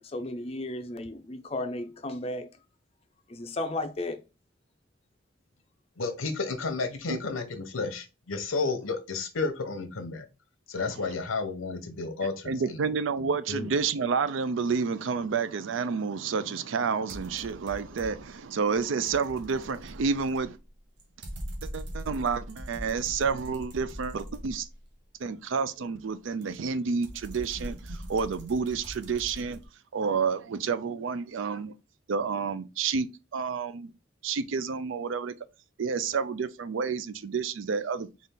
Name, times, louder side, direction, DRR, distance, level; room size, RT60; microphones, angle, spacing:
voice 1, 0.0-2.5 3.3-4.2, left 2 dB, 30° left, 0.4 m, -34 dB
voice 2, 6.0-10.3 10.7-12.8 13.2-13.7, left 3 dB, 90° left, 0.9 m, -32 dB
voice 3, 12.2-20.6 21.6-24.7 25.2-29.6 29.9-31.7 32.1-33.1 33.3-33.9 34.2-35.3 35.8-38.1, right 5 dB, 75° right, 0.4 m, -29 dB
sound 1, 17.1-18.4 18.7-24.9 26.4-29.7, equal, 55° right, 1.0 m, -42 dB
4.0 x 2.4 x 3.7 m
head